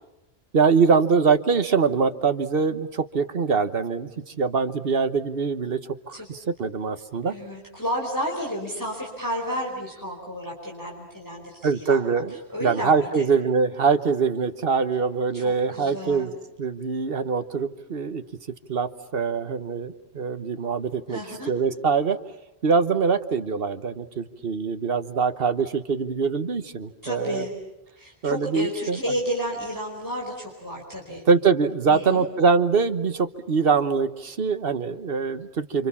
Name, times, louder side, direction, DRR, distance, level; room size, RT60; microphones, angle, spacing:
voice 1, 0.5-5.8 6.1-7.3 11.6-16.3 16.6-18.2 18.7-21.2 21.5-22.2 22.6-27.5 28.2-29.0 31.3-35.9, right 5 dB, 60° right, 10 dB, 1.4 m, -23 dB
voice 2, 7.3-12.0 12.5-13.3 15.3-16.3 21.1-21.5 27.0-27.5 28.0-31.2 31.9-32.3, equal, 20° left, -2 dB, 4.7 m, -31 dB
29.5 x 26.5 x 7.2 m, 0.94 s
omnidirectional pair, 1.1 m